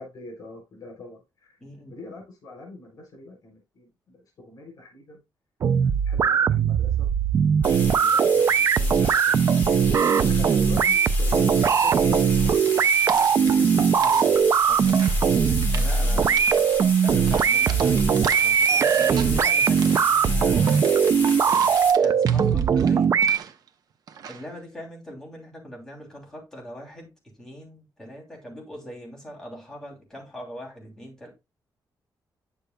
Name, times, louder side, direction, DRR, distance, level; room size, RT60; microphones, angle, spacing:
voice 1, 0.0-1.6 1.9-5.2 5.8-7.1 7.6-9.7 10.0-12.8 13.1-14.3 16.0-16.6, left 3 dB, 55° left, 3.8 m, -43 dB
voice 2, 1.6-1.9 14.0-14.3 14.7-16.4 17.0-20.8 22.0-23.2 24.3-31.3, equal, 5° left, 2.9 m, -41 dB
sound 1, 5.6-23.4, right 6 dB, 45° right, 0.3 m, -20 dB
sound 2, 7.6-21.9, left 2 dB, 25° left, 2.5 m, -34 dB
sound 3, 12.6-14.3 14.6-15.2 15.6-16.0 16.3-16.8 17.3-19.4 19.7-23.7 24.1-24.5, right 7 dB, 60° right, 0.8 m, -39 dB
9.5 x 6.7 x 2.2 m
wide cardioid pair, 175°, 7 cm